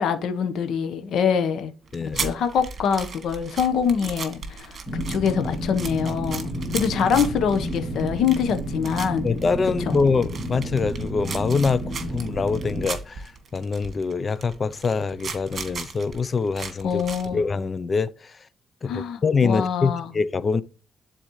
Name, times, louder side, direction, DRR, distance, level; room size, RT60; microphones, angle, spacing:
voice 1, 0.0-1.7 2.1-9.3 9.8-10.0 16.8-17.4 18.9-20.1, left 7 dB, 75° left, 1.1 m, -24 dB
voice 2, 1.9-2.2 9.2-17.0 17.3-18.4 18.8-20.6, left 4 dB, 35° left, 0.5 m, -24 dB
sound 1, 1.9-17.3, right 4 dB, 45° right, 2.1 m, -36 dB
sound 2, 4.9-12.9, equal, 15° left, 2.8 m, -31 dB
12.0 x 4.2 x 3.1 m
cardioid pair, 90°, 0 cm